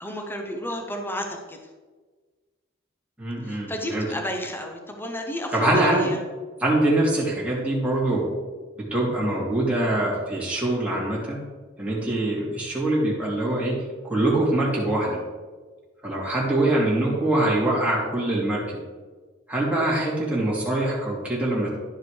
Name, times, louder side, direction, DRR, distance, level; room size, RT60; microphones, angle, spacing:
voice 1, 0.0-1.7 3.4-6.2, left 1 dB, 10° left, 3 dB, 0.9 m, -32 dB
voice 2, 3.2-4.1 5.5-6.1 6.6-8.3 8.8-11.4 11.8-13.8 14.0-15.2 16.0-18.8 19.5-21.8, right 1 dB, 5° right, -6 dB, 2.3 m, -24 dB
11.0 x 4.8 x 4.9 m, 1.4 s
head